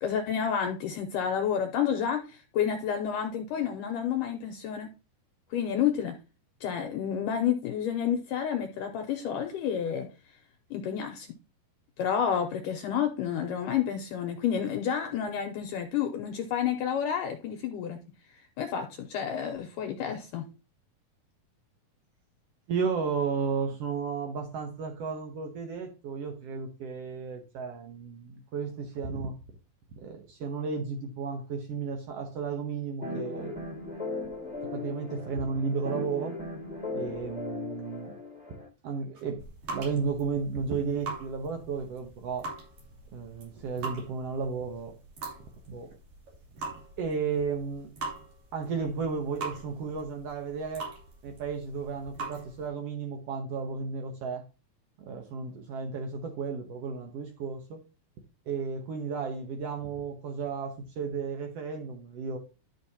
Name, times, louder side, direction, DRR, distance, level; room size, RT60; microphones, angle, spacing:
voice 1, 0.0-4.9 5.5-6.2 6.6-10.1 10.7-11.3 12.0-18.0 18.3-20.5, left 8 dB, 75° left, 2.1 m, -30 dB
voice 2, 22.7-29.3 30.0-33.5 34.7-36.4 36.9-38.1 38.8-39.4 39.7-42.5 43.1-45.0 45.7-45.9 47.0-47.9 48.5-50.9 51.2-54.4 55.0-57.8 58.5-62.4, right 5 dB, 80° right, 1.3 m, -33 dB
sound 1, 33.0-38.7, left 3 dB, 10° right, 0.4 m, -37 dB
sound 2, 39.1-52.7, right 3 dB, 55° right, 4.0 m, -42 dB
12.0 x 6.0 x 2.8 m
omnidirectional pair, 4.3 m